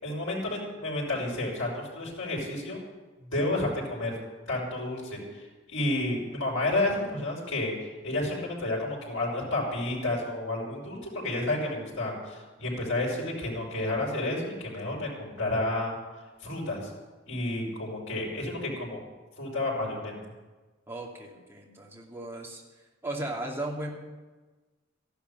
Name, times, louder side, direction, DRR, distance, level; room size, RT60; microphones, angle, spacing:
voice 1, 0.0-2.8 3.2-4.2 4.5-15.9 16.4-16.9 17.3-19.0 19.4-20.2, left 2 dB, 90° left, -3 dB, 5.3 m, -31 dB
voice 2, 20.9-22.6 23.0-23.9, right 1 dB, 15° right, -2 dB, 2.6 m, -36 dB
14.0 x 11.5 x 7.1 m, 1.2 s
head